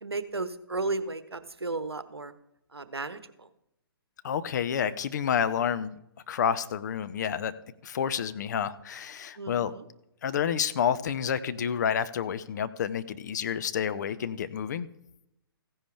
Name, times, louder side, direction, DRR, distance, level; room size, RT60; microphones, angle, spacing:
voice 1, 0.0-2.3 2.7-3.5 9.4-9.8, right 3 dB, 85° right, 13 dB, 1.0 m, -34 dB
voice 2, 4.2-5.9 6.3-7.5 7.8-9.7 10.2-14.9, left 8 dB, 45° left, 13 dB, 0.7 m, -29 dB
15.5 x 10.0 x 3.4 m, 0.83 s
figure-of-eight pair, 130°, 13 cm